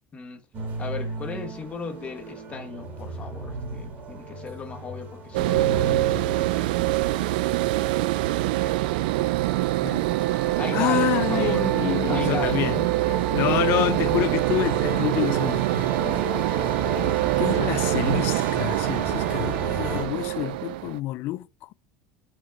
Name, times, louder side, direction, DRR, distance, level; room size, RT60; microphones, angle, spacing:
sound 1, 0.5-20.0, right 3 dB, 35° right, 2.8 m, -34 dB
voice 1, 0.8-6.7 10.4-11.7 12.1-12.7, left 5 dB, 25° left, 1.4 m, -36 dB
sound 2, 5.3-21.0, right 17 dB, 90° right, 0.4 m, -24 dB
voice 2, 10.7-16.7 17.2-21.7, left 16 dB, 55° left, 0.4 m, -28 dB
5.6 x 5.3 x 5.8 m
supercardioid pair, 130°, 5 cm